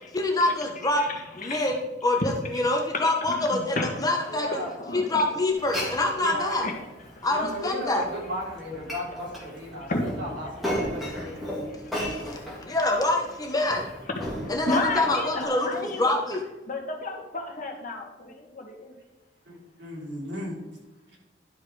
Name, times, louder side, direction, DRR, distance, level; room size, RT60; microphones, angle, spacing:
voice 1, 0.1-1.0 1.4-4.5 4.9-6.7 7.2-8.0 12.2-12.4 12.6-13.8 14.5-16.4, left 2 dB, 20° left, 2 dB, 1.0 m, -25 dB
voice 2, 1.0-1.7 2.5-2.6 3.3-4.3 4.8-5.4 6.5-7.5 9.8-10.1 11.8-12.8 14.2-14.3 14.7-16.1 16.7-18.9, left 2 dB, 45° left, 2 dB, 1.6 m, -33 dB
voice 3, 4.3-4.7 6.2-6.6 7.2-11.4 15.0-15.6 19.5-20.6, equal, 65° right, -4 dB, 3.7 m, -35 dB
Glass, 5.5-15.4, equal, ahead, 2.8 m, -36 dB
12.0 x 5.6 x 4.8 m, 1.0 s
head